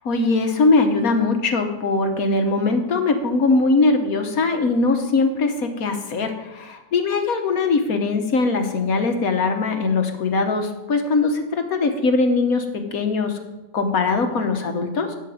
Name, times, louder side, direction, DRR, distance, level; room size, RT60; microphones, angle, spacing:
voice 1, 0.1-13.4 13.7-15.2, left 3 dB, 75° left, 6 dB, 1.6 m, -21 dB
9.1 x 7.7 x 9.3 m, 1.1 s
omnidirectional pair, 1.6 m